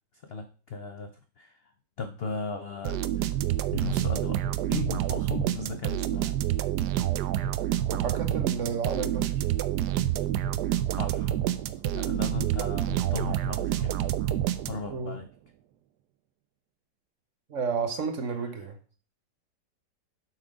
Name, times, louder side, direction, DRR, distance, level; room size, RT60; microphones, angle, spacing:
voice 1, 0.2-1.7 2.0-3.3 3.7-6.4 10.9-11.4 11.9-14.0 14.7-15.3, left 4 dB, 65° left, 8 dB, 0.6 m, -37 dB
sound 1, 2.8-15.1, right 12 dB, 80° right, 1.1 m, -28 dB
voice 2, 7.9-9.3 14.9-15.2 17.5-18.8, right 5 dB, 50° right, 8 dB, 1.1 m, -31 dB
7.5 x 6.0 x 4.9 m, 0.38 s
omnidirectional pair, 1.9 m